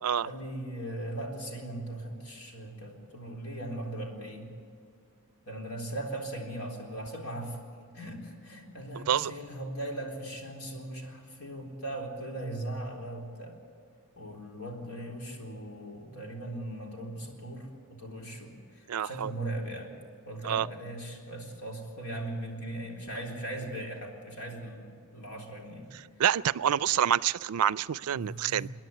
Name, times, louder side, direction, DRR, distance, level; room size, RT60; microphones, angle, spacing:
voice 1, 0.2-4.5 5.5-7.6 7.9-13.6 14.2-19.9 20.3-25.9 28.1-28.7, right 1 dB, 80° left, 0 dB, 3.9 m, -39 dB
voice 2, 8.9-9.3 18.9-19.3 20.4-20.7 26.2-28.7, right 9 dB, 75° right, 19 dB, 0.4 m, -27 dB
28.0 x 10.5 x 9.4 m, 2.3 s
head